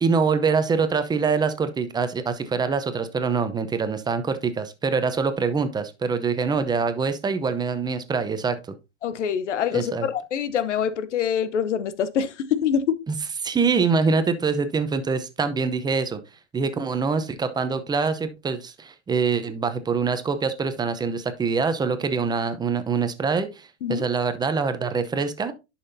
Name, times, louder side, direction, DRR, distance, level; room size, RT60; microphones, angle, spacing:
voice 1, 0.0-8.6 9.7-10.1 13.1-13.2 13.4-16.2 16.5-25.5, right 5 dB, 10° right, 0.7 m, -24 dB
voice 2, 9.0-13.0 23.8-24.0, left 8 dB, 85° left, 0.9 m, -25 dB
10.5 x 5.8 x 2.7 m
hypercardioid pair, 120°, 35 cm